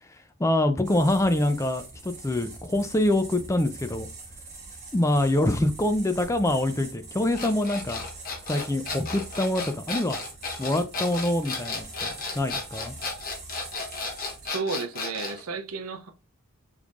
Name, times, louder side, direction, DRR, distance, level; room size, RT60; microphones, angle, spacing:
voice 1, 0.4-4.1 4.9-8.0 8.4-10.2 10.6-12.9, left 1 dB, 15° left, 0.4 m, -25 dB
sound 1, 0.8-14.5, right 3 dB, 30° right, 1.6 m, -43 dB
sound 2, 7.3-15.4, left 3 dB, 40° left, 1.1 m, -34 dB
voice 2, 14.4-16.1, right 4 dB, 85° right, 0.7 m, -32 dB
5.2 x 3.2 x 2.5 m
head